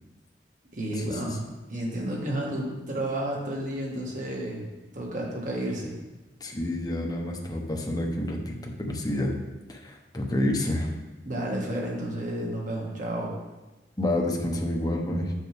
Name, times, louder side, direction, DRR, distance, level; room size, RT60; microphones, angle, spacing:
voice 1, 0.7-4.7 4.9-5.9 11.2-13.4, right 1 dB, 45° right, -3 dB, 1.9 m, -31 dB
voice 2, 6.4-9.4 9.7-10.9 14.0-15.3, left 1 dB, 20° left, 0 dB, 1.1 m, -28 dB
7.5 x 6.4 x 3.6 m, 1.1 s
head